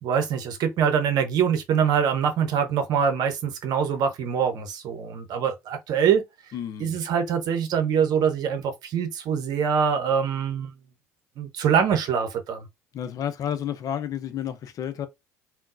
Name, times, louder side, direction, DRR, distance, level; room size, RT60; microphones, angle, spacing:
voice 1, 0.0-6.2 6.8-10.7 11.4-12.7, right 7 dB, 55° right, 0.9 m, -24 dB
voice 2, 6.5-7.0 12.9-15.1, left 9 dB, 50° left, 0.6 m, -31 dB
3.7 x 2.3 x 2.5 m
hypercardioid pair, 60°, 8 cm